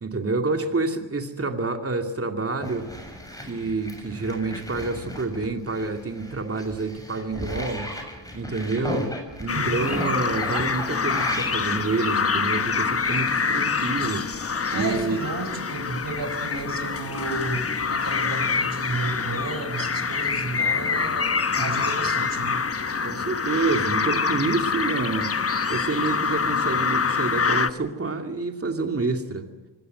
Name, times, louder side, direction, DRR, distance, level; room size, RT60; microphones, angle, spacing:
voice 1, 0.0-2.9 3.4-7.9 8.3-9.1 9.4-14.3 14.7-15.2 20.7-20.8 21.6-21.9 23.0-25.3 25.7-29.5, right 3 dB, 30° right, 5 dB, 2.5 m, -28 dB
sound 1, 2.6-15.5 15.9-18.4, left 1 dB, 10° left, 7.1 m, -37 dB
sound 2, 9.5-27.7, left 5 dB, 30° left, 1.1 m, -26 dB
voice 2, 9.5-9.8 14.7-22.6, right 3 dB, 50° right, 7 dB, 5.0 m, -32 dB
25.0 x 17.5 x 7.9 m, 1.2 s
cardioid pair, 75°, 44 cm